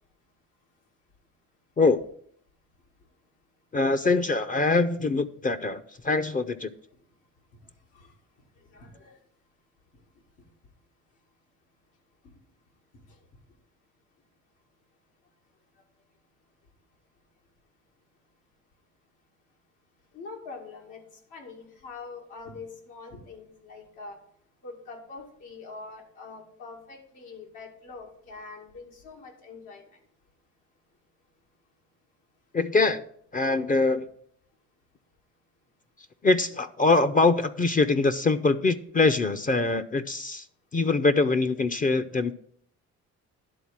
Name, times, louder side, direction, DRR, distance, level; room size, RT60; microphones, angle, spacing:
voice 1, 3.7-6.7 32.5-33.0 33.3-34.1 36.2-40.5 40.7-42.3, left 3 dB, 25° left, 11 dB, 0.5 m, -23 dB
voice 2, 8.7-9.1 20.1-21.0 21.3-24.2 24.6-29.8 41.6-41.7, left 4 dB, 90° left, 0 dB, 2.4 m, -44 dB
11.0 x 3.9 x 7.2 m, 0.64 s
cardioid pair, 90°, 30 cm